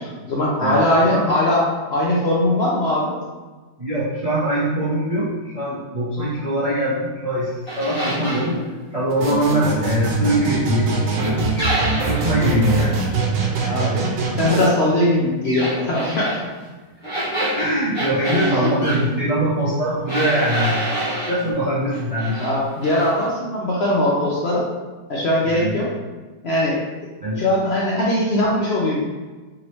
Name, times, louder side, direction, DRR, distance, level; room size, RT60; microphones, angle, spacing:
voice 1, 0.0-1.6 1.9-3.1 13.6-14.0 14.4-16.4 18.4-18.7 22.4-24.6 25.1-25.9 26.4-26.8 27.4-29.0, left 1 dB, 70° left, -5 dB, 0.6 m, -20 dB
voice 2, 0.6-1.3 3.8-8.6 8.9-11.5 12.0-13.0 17.2-22.4 25.5-25.7 27.2-27.4, right 1 dB, 55° right, -8 dB, 0.4 m, -22 dB
sound 1, 7.7-8.5 11.6-12.4 15.4-16.4 17.0-19.0 20.1-21.4 21.9-22.5 22.8-23.1, right 1 dB, 35° left, 1.3 m, -27 dB
sound 2, 9.1-14.7, right 3 dB, 80° right, 1.3 m, -23 dB
3.8 x 3.0 x 3.0 m, 1.3 s
omnidirectional pair, 1.8 m